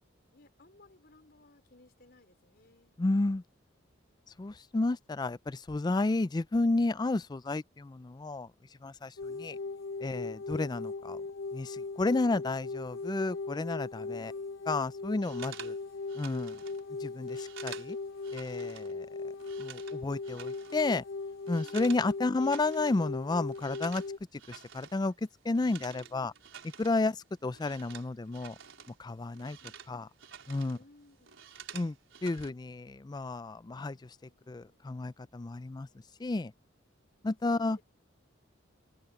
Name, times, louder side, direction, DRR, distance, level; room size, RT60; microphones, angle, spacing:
voice 1, 0.3-3.0 9.3-9.8 13.9-14.6 20.2-20.7 21.6-21.8 25.9-26.3 27.0-27.2 29.6-29.8 30.7-31.4 33.7-34.8 37.5-37.8, left 2 dB, 55° left, 5.0 m, -62 dB
voice 2, 3.0-3.4 4.4-8.5 8.8-9.1 9.4-9.5 10.0-11.2 11.5-14.3 14.7-15.7 16.2-16.6 17.0-18.0 18.3-19.1 19.6-21.0 21.5-24.0 24.5-25.1 25.4-26.3 26.8-27.1 27.4-28.6 29.0-29.6 29.9-30.0 30.5-30.8 31.7-32.0 32.2-34.1 34.5-35.9 36.2-36.5 37.2-37.8, left 2 dB, 20° left, 0.4 m, -31 dB
sound 1, 9.2-24.2, left 3 dB, 85° left, 1.2 m, -39 dB
sound 2, 15.2-18.9 19.2-22.1 22.3-23.1 23.3-29.0 29.2-30.8 31.1-32.5, right 8 dB, 75° right, 4.4 m, -50 dB
head